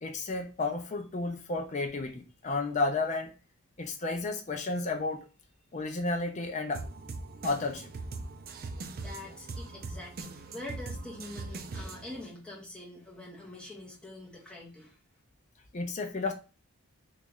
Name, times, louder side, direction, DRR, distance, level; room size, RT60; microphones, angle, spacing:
voice 1, 0.0-3.3 3.8-5.3 5.7-6.8 7.4-7.9 15.7-16.3, left 3 dB, 35° left, 0.4 m, -32 dB
sound 1, 6.7-12.2, right 3 dB, 45° right, 0.4 m, -41 dB
voice 2, 8.9-15.0, left 1 dB, 5° left, 1.0 m, -45 dB
3.1 x 2.4 x 3.6 m
head